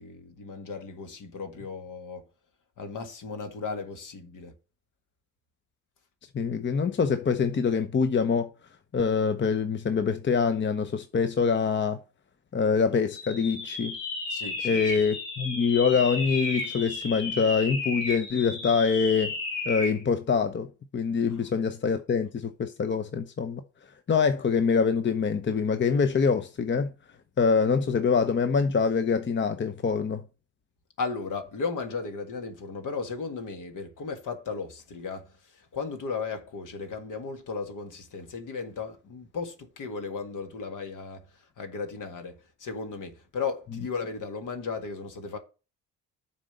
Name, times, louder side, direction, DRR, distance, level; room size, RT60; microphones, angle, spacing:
voice 1, 0.0-2.3 2.8-4.6 14.3-14.9 21.3-21.4 31.0-45.4, left 4 dB, 60° left, 1.8 m, -35 dB
voice 2, 6.3-8.5 8.9-12.0 12.5-14.0 14.6-19.3 19.7-20.7 20.9-23.6 24.1-26.9 27.4-30.2, left 5 dB, 30° left, 0.8 m, -25 dB
sound 1, 13.1-20.0, left 3 dB, 85° left, 2.2 m, -33 dB
7.2 x 4.3 x 6.5 m
hypercardioid pair, 55°, 35 cm